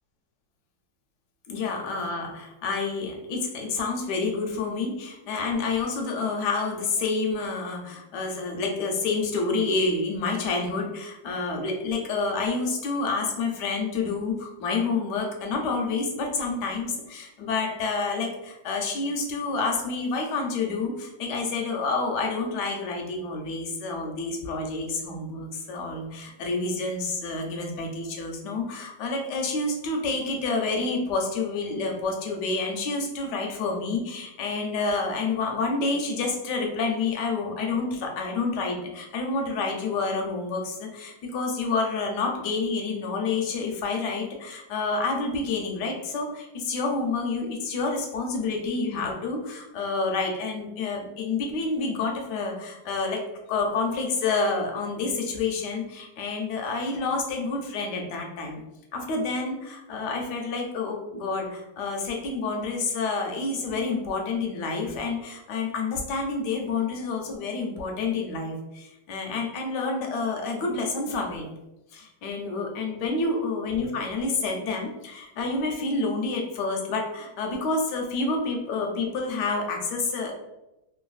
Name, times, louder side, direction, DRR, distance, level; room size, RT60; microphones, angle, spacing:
voice 1, 1.5-53.2 53.5-58.6 58.9-71.5 71.9-80.3, left 3 dB, 75° left, 1 dB, 1.1 m, -28 dB
3.2 x 2.2 x 2.4 m, 0.92 s
omnidirectional pair, 2.0 m